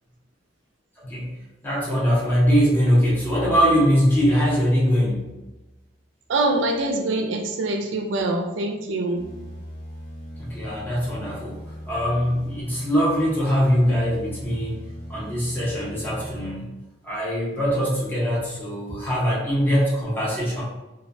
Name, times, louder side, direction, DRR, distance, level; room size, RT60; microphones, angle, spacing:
voice 1, 1.0-1.3 1.6-5.3 10.4-11.6 11.9-14.7 15.1-16.7 17.0-20.6, equal, 10° left, -7 dB, 0.7 m, -22 dB
voice 2, 6.3-9.2, right 2 dB, 90° right, 3 dB, 0.4 m, -24 dB
sound 1, 9.1-16.5, equal, 75° left, 1.1 m, -39 dB
2.2 x 2.1 x 2.5 m, 1.0 s
head